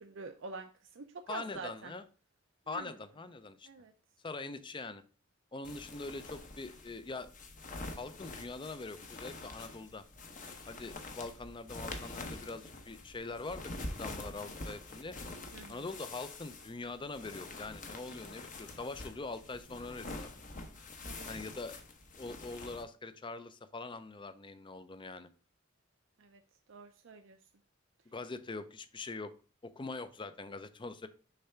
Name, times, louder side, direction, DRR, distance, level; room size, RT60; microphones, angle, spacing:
voice 1, 0.0-1.9 2.7-2.9 3.6-3.9 15.5-15.9 21.0-21.4 26.2-26.4 26.7-27.4, right 4 dB, 70° right, 5 dB, 0.6 m, -46 dB
voice 2, 1.3-2.0 2.7-3.7 4.2-5.0 5.5-7.3 8.0-10.0 10.7-15.2 15.7-20.3 21.3-21.7 22.2-25.3 28.1-29.3 29.6-31.1, left 3 dB, 25° left, 11 dB, 0.5 m, -43 dB
sound 1, 5.6-22.8, left 2 dB, 40° left, 1.0 m, -46 dB
6.6 x 3.5 x 5.6 m, 0.36 s
head